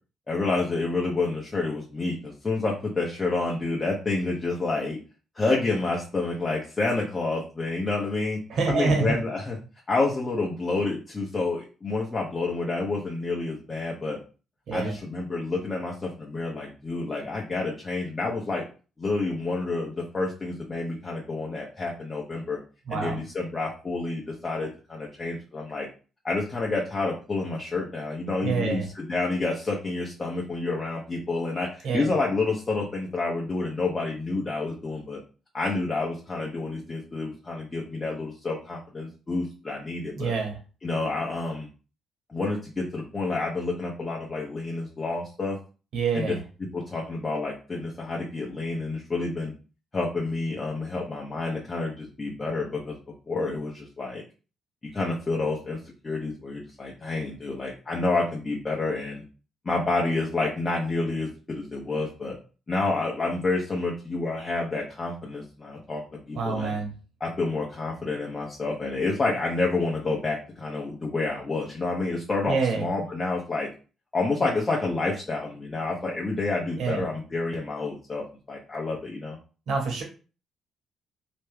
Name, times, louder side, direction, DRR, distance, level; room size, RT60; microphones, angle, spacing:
voice 1, 0.3-5.0 5.3-8.4 8.7-9.6 9.9-14.2 14.7-18.6 19.0-22.6 22.9-25.9 26.2-35.2 35.5-40.3 40.8-41.7 42.3-45.6 46.1-46.4 46.7-49.5 49.9-53.0 53.3-54.2 54.9-55.8 56.0-59.2 59.6-62.4 62.7-66.8 67.2-73.7 74.1-79.4, left 3 dB, 30° left, -3 dB, 0.9 m, -29 dB
voice 2, 8.5-9.1 14.7-14.9 22.9-23.2 28.4-28.9 31.8-32.1 40.2-40.6 45.9-46.4 66.4-66.9 72.5-72.8 76.8-77.0 79.7-80.0, right 4 dB, 70° right, 1 dB, 1.2 m, -26 dB
3.1 x 2.2 x 3.3 m, 0.35 s
hypercardioid pair, 55°, 0 cm